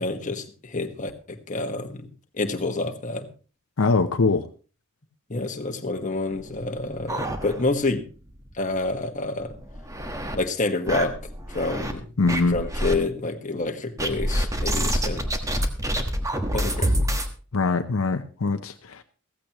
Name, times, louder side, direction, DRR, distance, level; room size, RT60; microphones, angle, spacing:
voice 1, 0.0-2.1 2.4-3.3 5.3-8.0 8.6-9.5 10.3-11.1 11.5-12.0 12.5-15.2 15.9-16.1 16.5-16.9, left 2 dB, 35° left, 4 dB, 1.5 m, -28 dB
voice 2, 3.8-4.5 12.2-12.6 17.5-19.0, left 3 dB, 75° left, 8 dB, 0.7 m, -22 dB
sound 1, 6.4-7.9 8.3-8.4 8.7-8.8 9.4-10.4 10.9-11.9 12.3-13.0 14.0-17.3, equal, 15° right, 1.4 m, -27 dB
15.5 x 15.0 x 3.0 m, 0.36 s
head